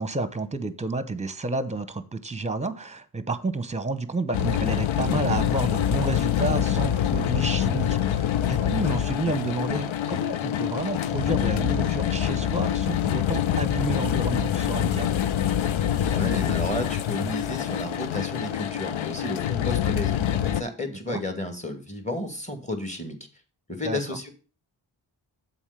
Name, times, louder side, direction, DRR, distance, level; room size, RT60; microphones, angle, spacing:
voice 1, 0.0-15.1 20.9-21.2 23.8-24.0, right 3 dB, 15° right, 12 dB, 0.9 m, -30 dB
sound 1, 4.3-20.6, left 10 dB, 85° left, 0.6 m, -25 dB
voice 2, 16.0-23.2 23.7-24.3, left 1 dB, 15° left, 5 dB, 2.1 m, -32 dB
7.2 x 4.4 x 6.7 m, 0.36 s
cardioid pair, 55°, 46 cm